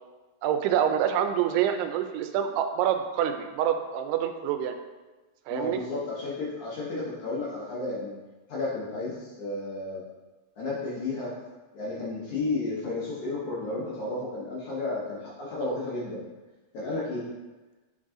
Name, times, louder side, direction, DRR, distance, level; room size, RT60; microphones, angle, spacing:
voice 1, 0.4-4.8 5.5-5.8 15.6-15.8, right 9 dB, 90° right, 7 dB, 2.6 m, -26 dB
voice 2, 5.5-8.2 8.5-10.0 10.6-11.3 11.7-16.2 16.7-17.3, left 2 dB, 65° left, -6 dB, 1.9 m, -32 dB
7.5 x 3.9 x 3.7 m, 1.2 s
omnidirectional pair, 4.6 m